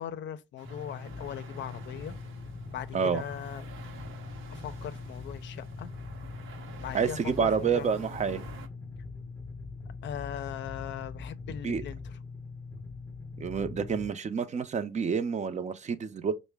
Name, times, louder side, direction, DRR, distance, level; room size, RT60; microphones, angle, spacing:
voice 1, 0.0-2.2 2.7-3.7 4.5-5.9 6.8-7.9 10.0-12.2, left 10 dB, 65° left, 0.5 m, -39 dB
sound 1, 0.6-14.1, left 4 dB, 15° left, 0.6 m, -42 dB
sound 2, 0.6-8.7, right 6 dB, 80° right, 0.8 m, -51 dB
voice 2, 6.9-8.4 11.6-11.8 13.4-16.3, right 6 dB, 35° right, 0.6 m, -28 dB
4.7 x 2.1 x 3.3 m
cardioid pair, 90°, 20 cm